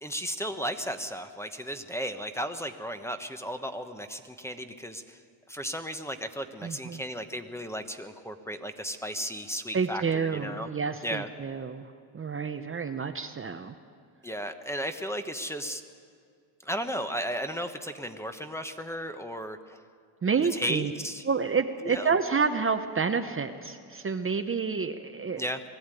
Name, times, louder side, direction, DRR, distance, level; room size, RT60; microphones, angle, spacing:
voice 1, 0.0-5.2 5.5-10.7 11.0-11.3 14.2-15.8 16.6-19.8 20.5-21.2 21.8-22.1 25.4-25.6, equal, 5° left, 7 dB, 1.1 m, -35 dB
voice 2, 6.6-7.0 9.7-11.9 12.1-13.7 20.2-20.9 21.2-25.4, right 5 dB, 25° right, 7 dB, 0.8 m, -29 dB
20.5 x 14.0 x 9.1 m, 2.2 s
cardioid pair, 105°, 47 cm